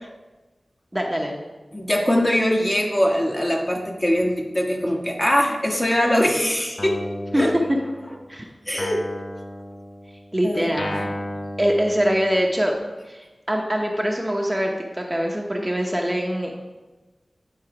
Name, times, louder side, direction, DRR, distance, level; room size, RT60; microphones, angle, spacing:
voice 1, 0.9-1.4 7.3-7.4 8.3-8.5 10.3-11.1 11.6-12.7 13.1-16.5, equal, 15° right, 0 dB, 0.9 m, -23 dB
voice 2, 1.7-7.5 8.7-9.1 10.4-10.7, equal, 25° left, 0 dB, 1.3 m, -22 dB
Guitar, 6.8-8.3 8.8-12.7, left 1 dB, 45° left, 0.6 m, -35 dB
9.4 x 3.9 x 4.8 m, 1.2 s
wide cardioid pair, 55°, 0 cm